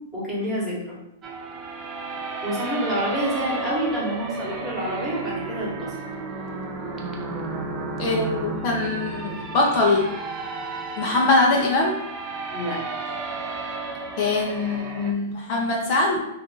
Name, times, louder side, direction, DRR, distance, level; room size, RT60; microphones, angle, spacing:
voice 1, 0.1-1.0 2.4-5.9 12.5-12.8, equal, 10° right, -7 dB, 1.3 m, -28 dB
sound 1, 1.2-15.1, right 3 dB, 25° right, 0.4 m, -33 dB
voice 2, 8.0-10.1 11.0-11.9 14.2-16.2, left 2 dB, 45° left, -2 dB, 0.6 m, -22 dB
2.6 x 2.4 x 3.8 m, 0.83 s
hypercardioid pair, 130°, 0 cm